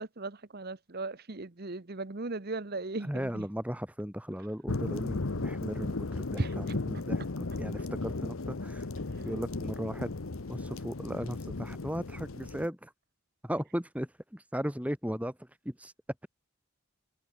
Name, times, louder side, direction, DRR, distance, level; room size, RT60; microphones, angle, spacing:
voice 1, 0.0-3.5 6.4-6.8 9.1-9.3, right 2 dB, 45° right, 1.1 m, -37 dB
voice 2, 3.0-7.2 7.6-8.9 9.2-10.2 10.5-12.9 13.4-15.9, equal, 5° right, 4.1 m, -36 dB
sound 1, 4.7-12.7, left 3 dB, 75° left, 1.0 m, -35 dB
head